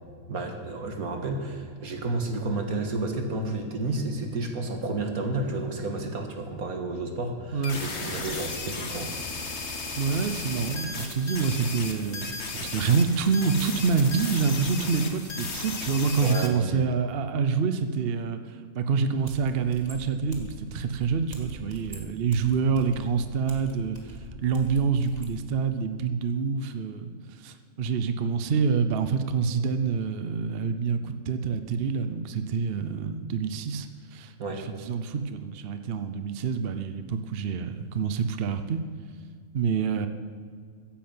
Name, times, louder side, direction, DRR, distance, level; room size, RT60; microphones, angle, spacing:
voice 1, 0.3-9.1 16.2-16.8 34.4-34.6, right 2 dB, 80° right, 4 dB, 2.1 m, -31 dB
sound 1, 7.6-16.5, left 3 dB, 50° left, 1.6 m, -35 dB
voice 2, 10.0-38.8 39.5-40.1, right 5 dB, 50° right, 10 dB, 0.8 m, -27 dB
sound 2, 19.2-25.4, right 2 dB, 30° right, 1.8 m, -43 dB
15.0 x 8.7 x 7.7 m, 2.1 s
omnidirectional pair, 1.5 m